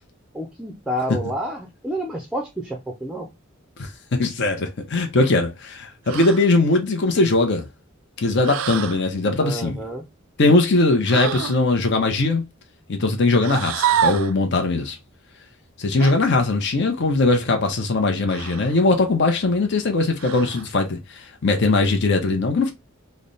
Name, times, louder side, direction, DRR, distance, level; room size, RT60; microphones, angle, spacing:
voice 1, 0.3-3.3 9.4-10.0, equal, 5° right, 0.4 m, -29 dB
voice 2, 3.8-7.7 8.2-9.8 10.4-12.4 12.9-15.0 15.8-22.7, left 3 dB, 60° left, 0.7 m, -20 dB
sound 1, 6.1-6.5 8.4-9.0 11.1-11.6 13.4-14.3 16.0-16.2 18.3-18.8 20.2-20.7, right 9 dB, 75° right, 0.3 m, -26 dB
3.2 x 2.1 x 3.9 m
head